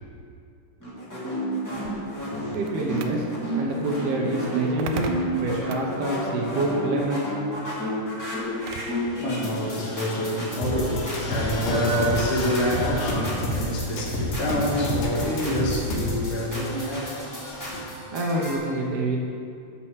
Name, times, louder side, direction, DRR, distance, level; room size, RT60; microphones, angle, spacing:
sound 1, 0.8-18.6, equal, 10° left, 1.1 m, -33 dB
sound 2, 1.7-9.1, right 6 dB, 85° right, 1.6 m, -40 dB
voice 1, 2.5-3.3 3.5-5.1 5.4-7.3 18.1-19.2, right 2 dB, 70° right, -2 dB, 1.5 m, -27 dB
voice 2, 8.3-17.9, equal, 65° left, -3 dB, 2.9 m, -27 dB
sound 3, 10.6-16.3, equal, 85° left, 3.0 m, -28 dB
10.5 x 4.3 x 7.3 m, 2.5 s
omnidirectional pair, 3.8 m